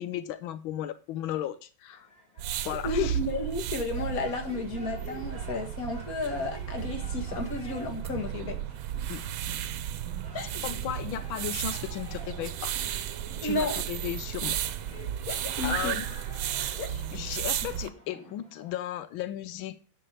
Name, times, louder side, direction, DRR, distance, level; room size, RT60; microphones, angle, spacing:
voice 1, 0.0-2.1 2.6-3.2 9.1-9.2 10.6-12.7 13.4-14.6 15.6-16.1 16.5-16.8 17.1-19.8, left 12 dB, 90° left, 12 dB, 1.5 m, -35 dB
sound 1, 1.9-18.8, left 1 dB, 5° left, 2.9 m, -51 dB
sound 2, 2.4-17.9, right 10 dB, 85° right, 1.5 m, -34 dB
voice 2, 2.5-8.6 10.3-10.6 13.4-13.8 15.3-16.0 16.8-17.1, left 3 dB, 50° left, 4 dB, 2.0 m, -32 dB
10.0 x 5.5 x 5.5 m, 0.38 s
omnidirectional pair, 2.1 m